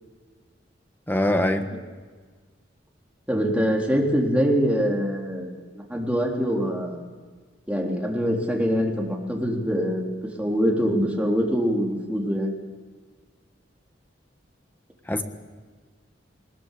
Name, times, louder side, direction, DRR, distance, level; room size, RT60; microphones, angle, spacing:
voice 1, 1.1-1.7 15.1-15.2, left 1 dB, 10° left, 6 dB, 1.5 m, -22 dB
voice 2, 3.3-5.6 5.9-7.0 7.7-10.0 10.4-12.5, equal, 5° right, -2 dB, 3.8 m, -24 dB
21.0 x 20.5 x 8.5 m, 1.5 s
head